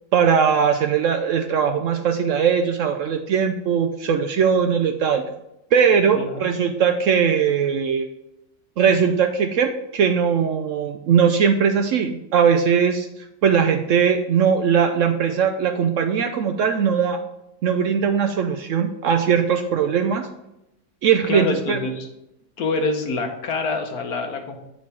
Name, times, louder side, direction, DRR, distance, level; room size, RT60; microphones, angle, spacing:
voice 1, 0.1-5.2 5.7-8.1 8.8-13.1 13.4-17.2 17.6-20.3 21.0-21.8, right 7 dB, 70° right, 6 dB, 0.8 m, -20 dB
voice 2, 6.1-6.5 21.3-22.1 22.6-24.6, left 3 dB, 70° left, 4 dB, 1.5 m, -26 dB
8.7 x 4.5 x 4.2 m, 0.87 s
omnidirectional pair, 1.7 m